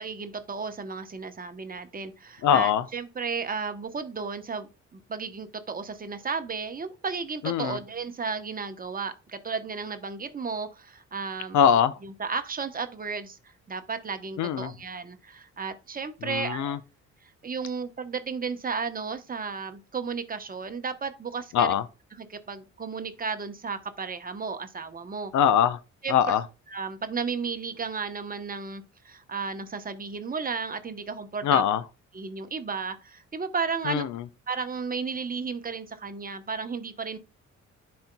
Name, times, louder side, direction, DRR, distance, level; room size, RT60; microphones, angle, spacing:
voice 1, 0.0-13.4 13.7-16.7 17.4-21.7 22.1-25.3 26.0-26.3 26.7-31.6 32.1-34.1 34.5-37.2, right 5 dB, 30° right, 0.9 m, -34 dB
voice 2, 2.4-2.8 7.4-7.8 11.5-11.9 14.4-14.7 16.2-16.8 21.5-21.8 25.3-25.8 26.1-26.4 31.4-31.8 33.9-34.2, left 9 dB, 75° left, 0.7 m, -22 dB
10.5 x 4.3 x 2.2 m
cardioid pair, 90°, 30 cm